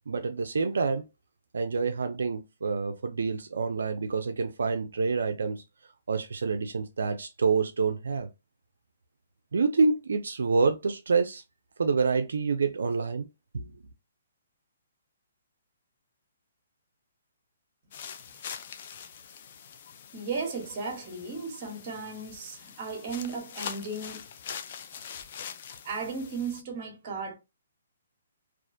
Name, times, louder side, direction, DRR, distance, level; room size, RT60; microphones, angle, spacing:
voice 1, 0.1-1.0 1.5-5.6 6.1-8.3 9.5-11.4 11.8-13.3 13.5-13.6, right 4 dB, 85° right, 0.3 m, -27 dB
sound 1, 17.9-26.6, left 7 dB, 45° left, 0.3 m, -43 dB
voice 2, 20.1-24.2 25.8-27.3, right 4 dB, 35° right, 0.9 m, -35 dB
2.3 x 2.1 x 2.5 m
hypercardioid pair, 160°, 0 cm